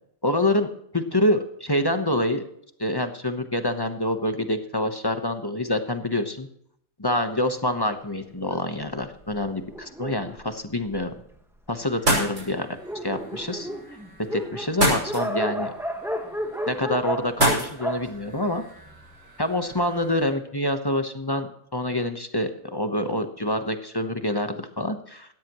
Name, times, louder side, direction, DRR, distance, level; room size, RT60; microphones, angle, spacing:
voice 1, 0.2-0.7 0.9-2.4 2.8-6.5 7.0-11.1 11.7-12.7 13.0-13.7 14.3-15.7 16.7-18.6 19.4-25.3, left 1 dB, 20° left, 7 dB, 0.9 m, -26 dB
Dog, 8.4-11.4 12.1-12.2 12.5-12.6 12.8-19.2, equal, ahead, 1.4 m, -33 dB
sound 1, 11.9-20.3, right 1 dB, 60° right, 6.3 m, -30 dB
17.5 x 13.5 x 3.1 m, 0.70 s
omnidirectional pair, 1.5 m